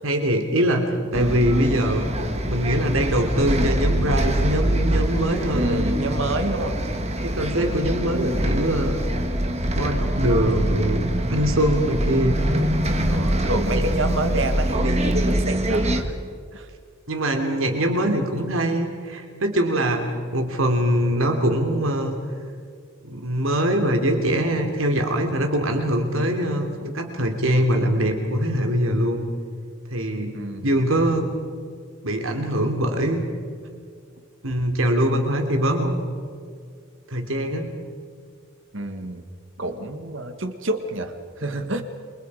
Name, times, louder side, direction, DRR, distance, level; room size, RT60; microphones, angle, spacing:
voice 1, 0.0-2.1 2.5-5.8 7.2-9.0 9.7-12.4 17.1-22.1 23.0-29.2 29.9-30.3 30.6-31.3 32.0-33.2 34.4-36.0 37.1-37.7, right 1 dB, 80° right, 4 dB, 3.2 m, -23 dB
Bus, 1.1-16.0, right 1 dB, 30° right, 1.8 m, -24 dB
voice 2, 5.5-6.8 13.1-16.1 16.5-16.7 30.3-30.8 38.7-39.2 39.6-41.8, right 2 dB, 65° right, 7 dB, 1.8 m, -28 dB
29.5 x 24.5 x 5.0 m, 2.1 s
head